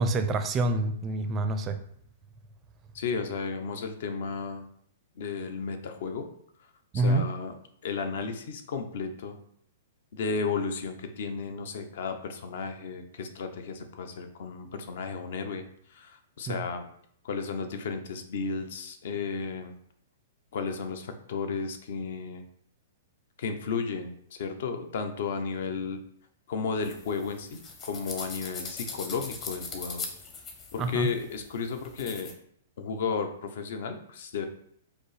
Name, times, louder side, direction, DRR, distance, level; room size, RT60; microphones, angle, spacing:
voice 1, 0.0-1.8 6.9-7.3 16.5-16.6 30.8-31.1, right 2 dB, 20° right, 7 dB, 0.4 m, -27 dB
voice 2, 2.9-4.7 5.2-6.3 6.9-7.6 7.8-9.4 10.1-16.8 17.2-19.7 20.5-22.4 23.4-26.0 26.5-30.0 30.7-32.3 32.8-34.5, left 5 dB, 65° left, 7 dB, 0.6 m, -33 dB
sound 1, 26.8-32.3, left 4 dB, 25° left, 0.7 m, -41 dB
5.1 x 2.0 x 4.7 m, 0.65 s
hypercardioid pair, 150°, 0 cm